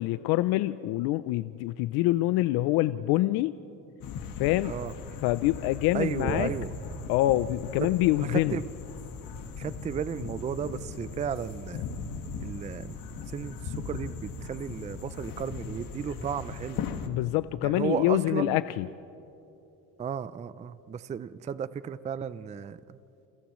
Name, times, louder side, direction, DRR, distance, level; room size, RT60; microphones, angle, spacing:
voice 1, 0.0-3.5 4.4-4.7 5.2-6.5 7.1-8.6 17.1-18.9, left 16 dB, 85° left, 14 dB, 0.5 m, -26 dB
sound 1, 4.0-17.1, left 5 dB, 65° left, 1.7 m, -38 dB
voice 2, 5.9-6.7 7.8-7.9 8.3-8.6 9.6-11.8 12.4-16.9 17.6-18.6 20.0-23.0, right 7 dB, 20° right, 15 dB, 0.4 m, -34 dB
29.5 x 29.0 x 3.1 m, 2.9 s
cardioid pair, 130°, 37 cm